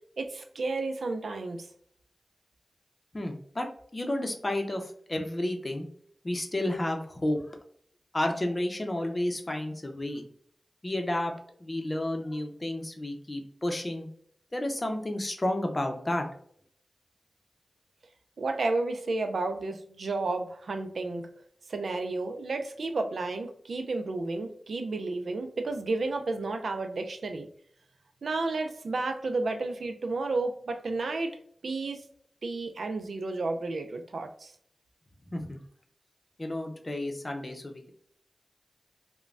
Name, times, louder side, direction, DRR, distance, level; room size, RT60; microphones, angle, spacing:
voice 1, 0.2-1.7 18.4-21.3 21.7-27.5 28.2-31.4 31.6-32.0 32.4-34.5, right 3 dB, 80° right, 6 dB, 0.3 m, -32 dB
voice 2, 3.1-3.7 3.9-5.9 6.2-7.4 8.1-10.2 10.8-11.3 11.6-14.1 14.5-16.3 35.3-35.6 36.4-37.9, left 1 dB, 35° left, 4 dB, 0.6 m, -31 dB
3.1 x 2.1 x 2.5 m, 0.63 s
cardioid pair, 45°, 0 cm